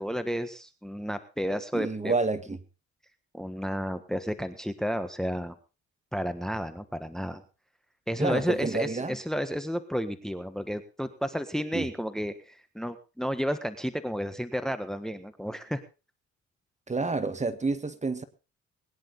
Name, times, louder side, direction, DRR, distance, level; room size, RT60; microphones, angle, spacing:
voice 1, 0.0-2.1 3.3-5.5 6.1-7.4 8.1-15.8, equal, ahead, 1.4 m, -32 dB
voice 2, 1.7-2.6 8.2-9.2 11.7-11.9 16.9-18.2, right 3 dB, 25° right, 1.7 m, -29 dB
22.0 x 10.5 x 4.0 m
cardioid pair, 90°, 30 cm